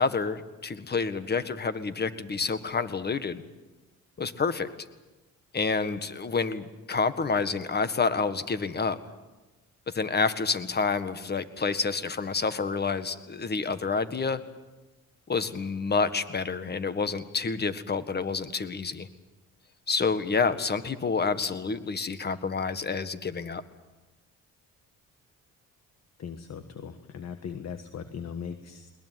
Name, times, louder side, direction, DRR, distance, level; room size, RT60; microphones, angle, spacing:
voice 1, 0.0-3.4 4.2-4.7 5.5-9.0 9.9-14.4 15.3-19.1 19.9-23.6, left 4 dB, 35° left, 11 dB, 1.7 m, -28 dB
voice 2, 26.2-28.9, left 7 dB, 60° left, 8 dB, 1.6 m, -39 dB
21.0 x 21.0 x 9.4 m, 1.1 s
cardioid pair, 90°, 30 cm